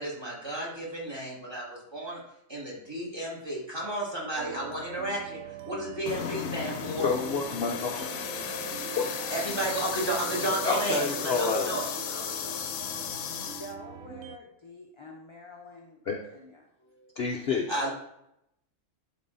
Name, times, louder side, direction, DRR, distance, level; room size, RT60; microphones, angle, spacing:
voice 1, 0.0-2.2 2.5-7.1 9.0-12.3 16.9-17.1 17.7-17.9, right 1 dB, 20° right, -4 dB, 2.4 m, -33 dB
sound 1, 4.4-14.4, right 10 dB, 65° right, 0.7 m, -43 dB
sound 2, 6.1-13.7, left 8 dB, 75° left, 1.1 m, -35 dB
voice 2, 7.0-8.0 9.0-9.1 10.6-11.8 16.1-16.2 17.2-17.7, left 4 dB, 55° left, 1 dB, 0.9 m, -28 dB
voice 3, 13.4-16.7, left 1 dB, 25° left, -1 dB, 0.8 m, -47 dB
11.0 x 4.1 x 4.1 m, 0.79 s
omnidirectional pair, 1.5 m